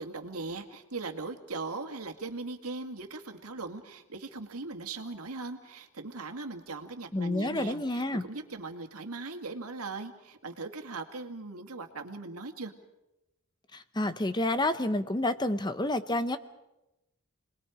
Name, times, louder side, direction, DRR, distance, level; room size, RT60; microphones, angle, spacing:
voice 1, 0.0-12.7, right 3 dB, 80° right, 5 dB, 2.1 m, -39 dB
voice 2, 7.1-8.3 13.7-16.4, left 1 dB, 20° left, 11 dB, 0.9 m, -29 dB
29.5 x 21.0 x 5.0 m, 0.94 s
head